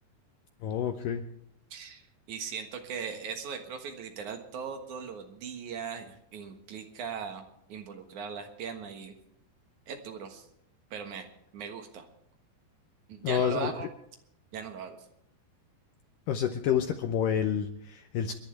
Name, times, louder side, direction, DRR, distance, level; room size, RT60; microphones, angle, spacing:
voice 1, 0.6-1.2 13.2-13.9 16.3-18.3, left 8 dB, 90° left, 6 dB, 1.9 m, -29 dB
voice 2, 1.7-2.0 2.3-7.4 7.7-9.1 9.9-10.5 10.9-11.3 11.5-12.1 13.1-13.9 14.5-15.0, right 6 dB, 60° right, 5 dB, 2.3 m, -39 dB
29.5 x 10.5 x 3.3 m, 0.76 s
omnidirectional pair, 4.9 m